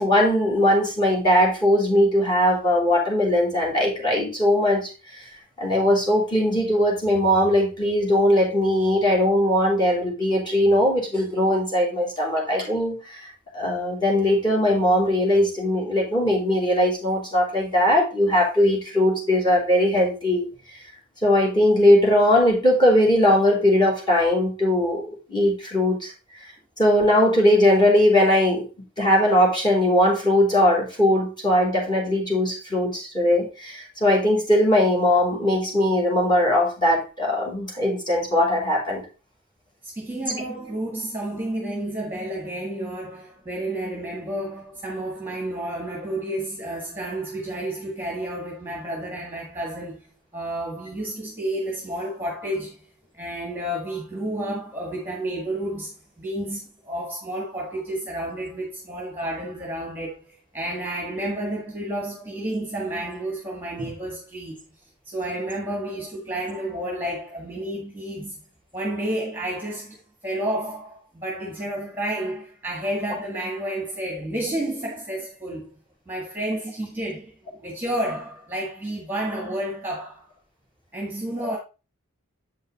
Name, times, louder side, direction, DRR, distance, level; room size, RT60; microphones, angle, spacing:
voice 1, 0.0-4.9 5.6-13.3 13.5-20.5 21.2-26.1 26.8-28.7 29.0-39.1 63.8-63.9 81.4-81.5, left 1 dB, 20° left, 3.3 m, -20 dB
voice 2, 39.8-50.0 50.3-52.9 53.1-68.4 68.7-75.7 76.1-80.3 80.9-81.6, right 1 dB, 10° right, 1.7 m, -31 dB
8.0 x 5.5 x 4.0 m
head